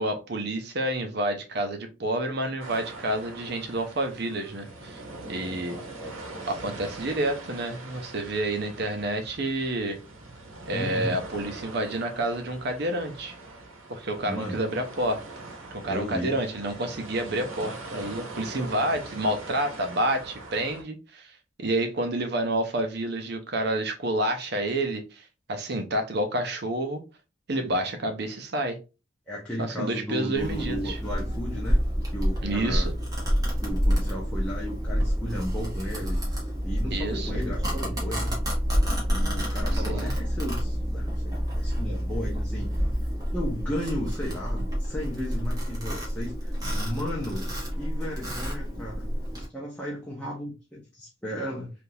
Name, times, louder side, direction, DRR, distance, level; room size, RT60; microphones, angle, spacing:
voice 1, 0.0-5.0 5.3-5.8 6.5-10.0 10.7-13.3 13.9-15.2 15.7-21.3 21.6-27.0 27.5-28.8 29.6-31.0 32.4-32.9 36.9-37.3 39.7-40.1, right 1 dB, 50° right, 0.6 m, -29 dB
sound 1, 2.6-20.8, right 2 dB, 80° right, 0.9 m, -42 dB
voice 2, 5.7-6.5 10.7-11.2 14.2-14.6 15.8-16.3 29.3-31.8 32.1-32.9 33.6-36.2 36.6-38.4 39.0-42.7 43.3-47.5 47.8-51.7, equal, 5° left, 0.7 m, -35 dB
Domestic sounds home sounds, 30.4-49.5, equal, 20° right, 1.0 m, -28 dB
3.5 x 2.4 x 2.7 m
head